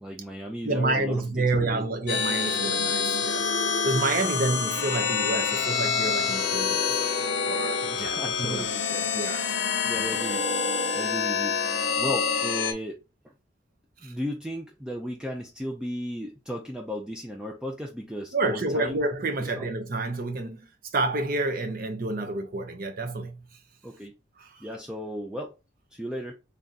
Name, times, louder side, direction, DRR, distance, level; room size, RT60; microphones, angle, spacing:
voice 1, 0.0-1.8 7.8-9.1 9.9-10.5 10.9-11.7 12.0-13.0 14.0-19.0 19.5-19.7 23.8-24.1 24.6-25.5 25.9-26.3, equal, 5° right, 0.4 m, -35 dB
voice 2, 0.6-3.4 3.8-8.7 9.1-9.4 14.0-14.1 18.3-23.5 24.4-24.6, right 2 dB, 50° right, 0.7 m, -29 dB
sound 1, 2.1-12.7, left 6 dB, 80° left, 0.6 m, -27 dB
3.4 x 2.5 x 3.9 m
head